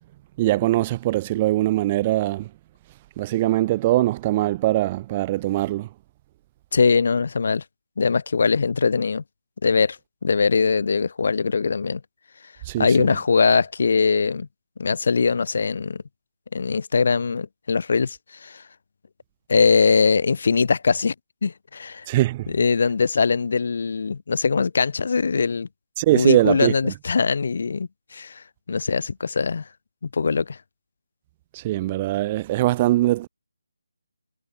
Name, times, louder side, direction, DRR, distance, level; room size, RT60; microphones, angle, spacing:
voice 1, 0.4-2.5 3.2-5.9 12.7-13.1 22.1-22.5 26.0-26.9 31.5-33.3, right 16 dB, 15° right, 0.9 m, -22 dB
voice 2, 6.7-7.6 8.0-9.2 9.6-10.0 10.2-12.0 12.8-14.5 14.8-16.0 16.5-18.6 19.5-21.1 21.4-22.1 22.5-25.7 26.1-29.6 30.0-30.6, left 5 dB, 35° left, 3.4 m, -21 dB
hypercardioid pair, 180°, 0 cm